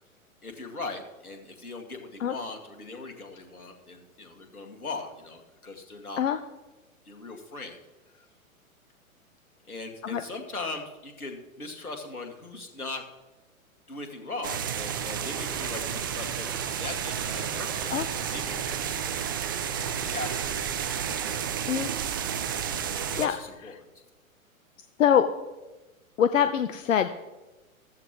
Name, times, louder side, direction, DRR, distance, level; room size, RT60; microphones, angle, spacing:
voice 1, 0.4-6.2 7.1-7.8 8.2-8.3 9.7-13.0 13.9-19.2 20.1-21.9 23.1-23.8, left 3 dB, 85° left, 3 dB, 2.2 m, -40 dB
sound 1, 14.4-23.3, right 8 dB, 15° right, 0.3 m, -31 dB
voice 2, 26.2-27.1, left 9 dB, 60° left, 10 dB, 0.8 m, -23 dB
15.0 x 14.0 x 3.1 m, 1.1 s
figure-of-eight pair, 110°, 43 cm